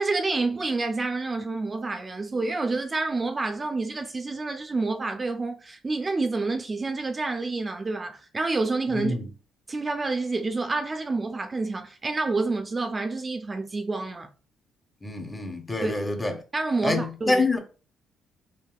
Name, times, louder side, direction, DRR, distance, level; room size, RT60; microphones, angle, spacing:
voice 1, 0.0-9.1 9.7-14.3 15.8-15.9 16.5-17.6, right 3 dB, 30° right, 0.4 m, -28 dB
voice 2, 8.9-9.3 15.0-16.4 16.8-17.6, left 2 dB, 20° left, 0.7 m, -26 dB
3.4 x 2.6 x 2.3 m
cardioid pair, 90°, 0 cm